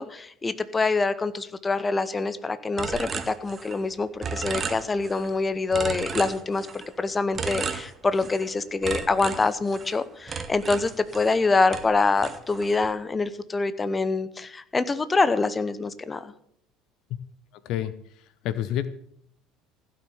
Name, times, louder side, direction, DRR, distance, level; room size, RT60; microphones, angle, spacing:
voice 1, 0.0-6.7 7.0-16.3, left 3 dB, 20° left, 14 dB, 1.0 m, -25 dB
sound 1, 2.8-3.9 4.2-5.3 5.7-6.9 7.3-8.5 8.8-11.4 11.7-12.9, right 5 dB, 30° right, 1.3 m, -34 dB
voice 2, 17.5-18.9, left 11 dB, 55° left, 14 dB, 0.8 m, -30 dB
16.0 x 6.3 x 8.3 m, 0.67 s
figure-of-eight pair, 65°, 0 cm